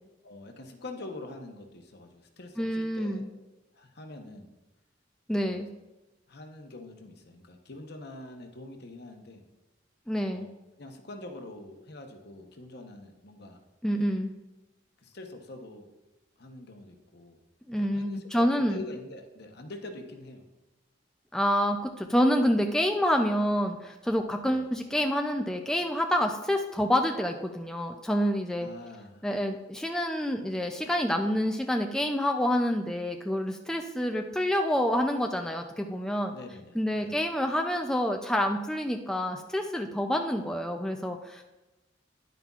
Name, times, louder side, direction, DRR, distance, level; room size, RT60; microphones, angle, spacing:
voice 1, 0.2-3.5 3.7-4.5 5.4-5.6 6.3-9.4 10.3-10.5 10.8-13.6 15.0-15.9 16.4-17.4 17.8-20.4 24.4-24.7 28.6-29.3 36.3-37.2, left 2 dB, 60° left, 5 dB, 0.9 m, -45 dB
voice 2, 2.6-3.3 5.3-5.7 10.1-10.5 13.8-14.4 17.7-18.8 21.3-28.7 29.2-36.3 36.8-41.4, equal, 5° left, 3 dB, 0.4 m, -27 dB
10.5 x 9.2 x 2.4 m, 1.1 s
head